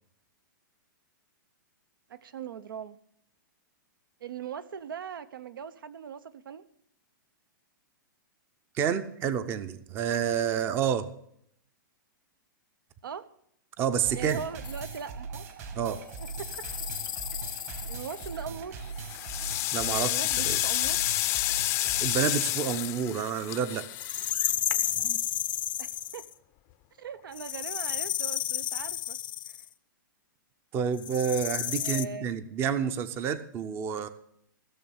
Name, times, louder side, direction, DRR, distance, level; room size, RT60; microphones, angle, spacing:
voice 1, 2.1-3.0 4.2-6.6 13.0-13.3 14.1-15.5 16.2-16.7 17.9-18.8 19.9-21.0 25.8-26.3 27.0-29.2 31.8-32.3, right 7 dB, 85° right, 15 dB, 0.8 m, -40 dB
voice 2, 8.7-11.1 13.8-14.4 15.8-16.0 19.7-20.1 20.4-20.6 22.0-23.9 30.7-34.1, right 8 dB, 20° right, 13 dB, 0.6 m, -29 dB
sound 1, 14.0-22.4, right 4 dB, 45° right, 2.0 m, -40 dB
sound 2, 14.6-15.0 16.1-18.4 19.6-22.8 23.9-26.3 27.3-29.7 31.0-32.0, left 11 dB, 70° left, 0.7 m, -33 dB
sound 3, 18.0-18.4 18.9-25.2, left 17 dB, 25° left, 0.5 m, -30 dB
16.0 x 6.5 x 7.2 m, 0.73 s
hypercardioid pair, 155°, 11 cm